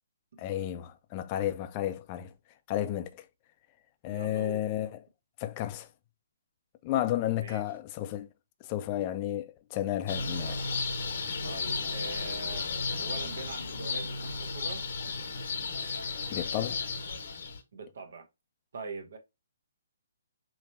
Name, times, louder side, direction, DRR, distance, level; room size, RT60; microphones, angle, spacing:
voice 1, 0.4-2.3 2.7-3.2 4.0-4.9 5.4-5.9 6.8-8.3 8.6-10.6 15.8-15.9 16.3-16.8, left 12 dB, 30° left, 0.5 m, -32 dB
voice 2, 4.1-4.6 7.4-7.6 11.4-12.7 13.0-14.9 17.7-18.3 18.7-19.2, right 4 dB, 60° right, 1.1 m, -42 dB
sound 1, 10.1-17.6, left 4 dB, 55° left, 0.9 m, -34 dB
5.0 x 3.2 x 2.7 m
figure-of-eight pair, 130°, 0 cm